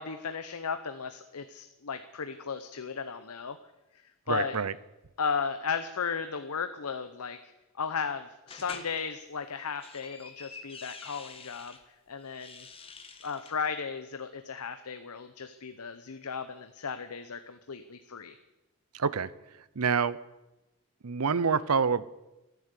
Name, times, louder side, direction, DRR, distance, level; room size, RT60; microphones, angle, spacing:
voice 1, 0.0-3.6 4.0-4.6 5.2-11.8 12.1-12.7 13.2-18.3, left 5 dB, 85° left, 9 dB, 0.8 m, -35 dB
voice 2, 4.3-4.7 18.9-19.3 19.8-20.2 21.0-22.1, right 5 dB, 80° right, 18 dB, 0.7 m, -27 dB
sound 1, 8.5-8.9 9.6-11.8 12.3-13.5, left 4 dB, 25° left, 1.5 m, -47 dB
14.0 x 10.5 x 8.3 m, 1.0 s
head